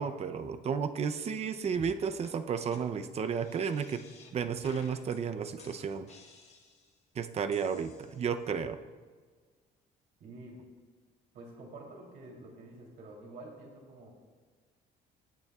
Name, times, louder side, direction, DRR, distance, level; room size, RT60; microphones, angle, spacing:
voice 1, 0.0-4.0 4.3-6.1 7.2-8.8, right 6 dB, 40° right, 9 dB, 0.7 m, -33 dB
sound 1, 1.8-2.0 2.2-2.3 2.7-2.8 3.2-4.3 4.6-5.2 5.6-7.0 7.5-8.5, left 4 dB, 40° left, 1.6 m, -54 dB
voice 2, 10.2-10.6 11.3-14.1, right 2 dB, 70° right, -1 dB, 3.1 m, -48 dB
20.0 x 9.0 x 2.4 m, 1.5 s
cardioid pair, 110°, 17 cm